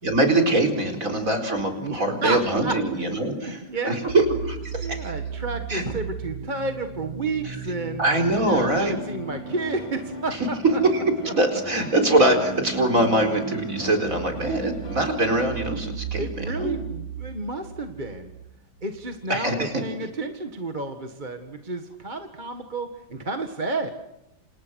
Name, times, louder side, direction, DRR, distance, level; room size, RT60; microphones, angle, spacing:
voice 1, 0.0-5.1 5.7-5.9 7.4-7.6 8.0-8.9 10.3-10.5 10.9-11.0 11.4-16.8 19.3-19.7, right 1 dB, 40° right, 4 dB, 4.8 m, -23 dB
voice 2, 1.8-2.7 3.3-4.0 4.8-8.0 8.5-10.8 16.2-18.3 18.8-23.9, right 2 dB, 25° right, 5 dB, 1.7 m, -31 dB
sound 1, 4.1-19.6, right 5 dB, 75° right, 4.8 m, -37 dB
sound 2, 8.8-15.5, equal, 15° left, 2.1 m, -40 dB
28.5 x 28.5 x 6.4 m, 0.87 s
omnidirectional pair, 2.2 m